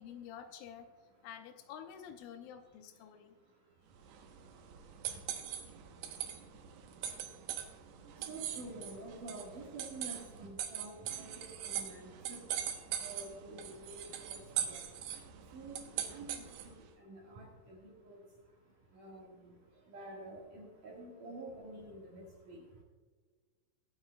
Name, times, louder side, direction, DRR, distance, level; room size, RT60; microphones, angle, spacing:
voice 1, 0.0-0.9 1.2-3.4, left 8 dB, 85° left, 7 dB, 3.1 m, -49 dB
voice 2, 0.9-1.3 2.3-22.8, right 2 dB, 60° right, -3 dB, 2.3 m, -51 dB
sound 1, 4.0-16.8, right 9 dB, 90° right, 2.2 m, -42 dB
23.5 x 8.0 x 2.2 m, 1.5 s
omnidirectional pair, 5.8 m